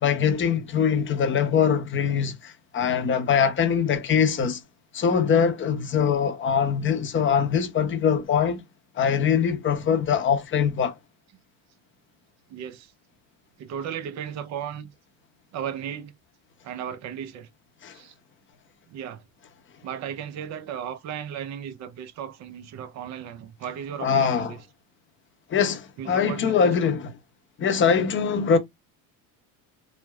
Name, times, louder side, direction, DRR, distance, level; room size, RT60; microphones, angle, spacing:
voice 1, 0.0-4.6 4.9-8.6 9.0-10.9 17.8-18.0 24.0-24.5 25.5-27.1 27.6-28.6, left 7 dB, 25° left, 0.6 m, -23 dB
voice 2, 12.5-12.9 13.6-14.9 15.5-16.1 16.6-17.5 17.9-18.1 18.9-19.2 19.8-24.6 26.0-26.9, right 8 dB, 40° right, 0.5 m, -35 dB
2.9 x 2.0 x 2.2 m
supercardioid pair, 90°, 44 cm